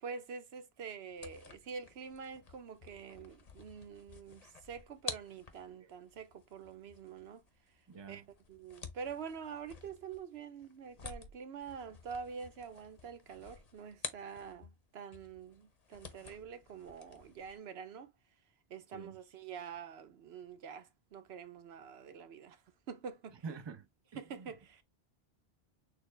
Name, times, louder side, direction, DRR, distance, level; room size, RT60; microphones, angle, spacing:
voice 1, 0.0-7.4 8.1-18.1 18.7-22.6 22.9-23.4 24.2-24.8, right 6 dB, 90° right, 1.0 m, -46 dB
sound 1, 1.1-14.8 15.1-17.6, left 5 dB, 40° left, 0.8 m, -51 dB
voice 2, 7.9-8.2 18.9-19.1 23.4-23.8, right 5 dB, 30° right, 0.6 m, -44 dB
6.5 x 2.2 x 3.2 m
omnidirectional pair, 1.0 m